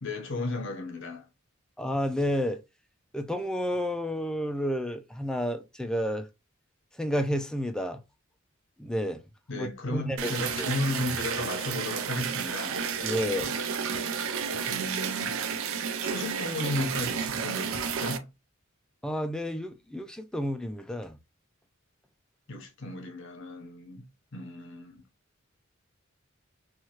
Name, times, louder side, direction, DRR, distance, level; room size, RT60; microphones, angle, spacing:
voice 1, 0.0-1.3 9.5-12.9 14.7-15.4 16.0-18.3 22.5-25.0, left 2 dB, 65° left, 0.9 m, -34 dB
voice 2, 1.8-2.6 3.1-6.3 7.0-8.0 8.8-9.2 9.5-10.7 13.0-13.6 19.0-21.2, equal, 5° left, 0.3 m, -31 dB
sound 1, 10.2-18.2, right 6 dB, 75° right, 0.4 m, -31 dB
2.9 x 2.3 x 2.9 m
head